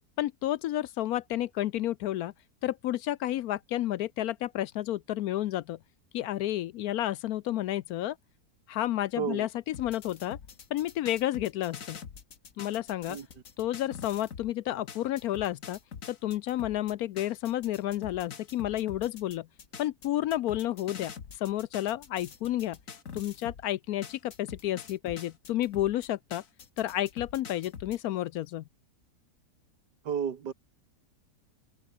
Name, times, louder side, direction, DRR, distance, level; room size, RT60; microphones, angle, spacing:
voice 1, 0.2-2.3 2.6-5.8 6.1-8.2 8.7-10.4 10.7-12.0 12.6-13.2 13.6-15.8 16.1-19.5 19.8-22.8 23.1-26.4 26.8-28.6, left 13 dB, 70° left, 1.0 m, -31 dB
voice 2, 9.2-9.5 13.1-13.3 30.0-30.5, right 7 dB, 80° right, 2.2 m, -32 dB
sound 1, 9.7-14.5 14.9-23.7 24.0-28.0, left 6 dB, 55° left, 1.9 m, -45 dB
open air
omnidirectional pair, 1.8 m